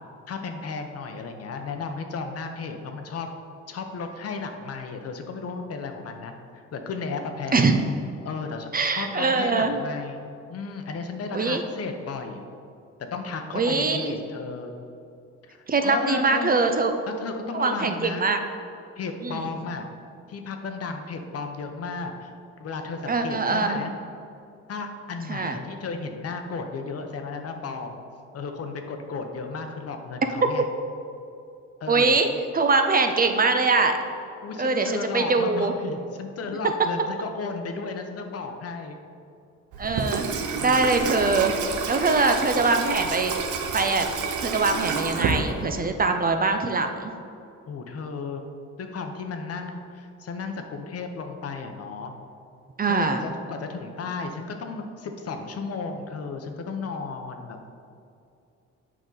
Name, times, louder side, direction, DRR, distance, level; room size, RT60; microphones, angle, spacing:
voice 1, 0.3-3.3 3.7-7.6 8.2-10.2 10.5-12.5 13.1-14.7 15.4-16.5 17.1-18.3 19.0-19.9 20.3-22.3 22.6-23.9 24.7-28.0 28.3-30.6 31.8-32.2 34.4-39.0 40.5-40.9 47.7-48.4 48.8-52.1 52.9-57.6, left 4 dB, 55° left, 5 dB, 0.8 m, -34 dB
voice 2, 8.7-9.8 11.3-11.6 13.5-14.2 15.7-16.9 17.5-18.4 19.2-19.4 23.1-23.8 25.3-25.6 31.9-32.3 32.5-34.0 34.6-35.7 39.8-40.3 40.6-41.6 41.9-43.3 43.7-44.1 44.4-47.1 52.8-53.3, right 3 dB, 30° right, 6 dB, 0.5 m, -23 dB
Water tap faucet / Sink (filling or washing), 39.7-46.0, right 5 dB, 75° right, 0.8 m, -29 dB
7.5 x 5.3 x 3.9 m, 2.5 s
cardioid pair, 90°, 30 cm